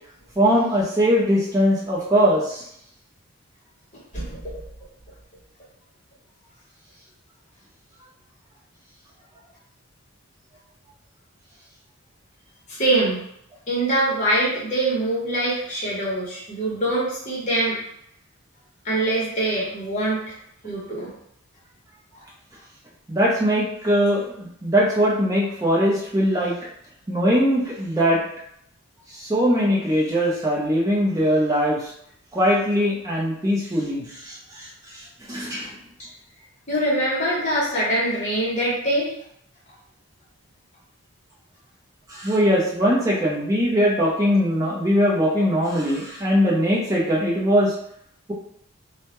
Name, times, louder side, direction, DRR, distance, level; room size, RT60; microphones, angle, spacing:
voice 1, 0.4-2.7 23.1-26.6 27.1-28.2 29.1-31.9 32.3-35.8 42.1-47.8, equal, 15° right, -4 dB, 0.5 m, -21 dB
voice 2, 4.1-4.6 12.7-13.2 13.7-17.8 18.8-20.2 20.6-21.1 36.7-39.1, right 1 dB, 35° left, -7 dB, 0.9 m, -23 dB
2.2 x 2.0 x 2.9 m, 0.73 s
head